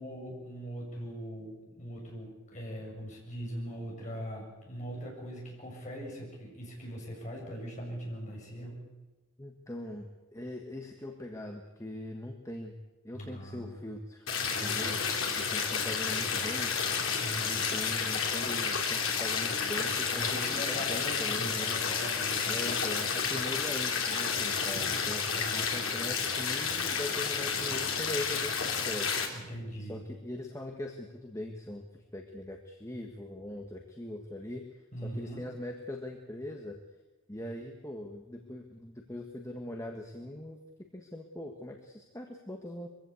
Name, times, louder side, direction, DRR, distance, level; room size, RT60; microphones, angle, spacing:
voice 1, 0.0-8.9 13.1-13.8 14.6-15.0 17.2-17.7 20.2-22.7 23.3-23.4 25.3-26.0 29.3-30.0 34.9-35.4, equal, 35° left, -1 dB, 7.1 m, -41 dB
voice 2, 9.4-12.7 13.0-14.3 14.6-15.0 15.4-16.7 17.4-21.8 22.4-29.2 29.8-36.8 37.3-40.6 40.9-42.9, left 1 dB, 15° left, 2 dB, 1.5 m, -41 dB
sound 1, 14.3-29.3, left 6 dB, 65° left, 3.2 m, -31 dB
23.0 x 15.5 x 8.4 m, 1.1 s
head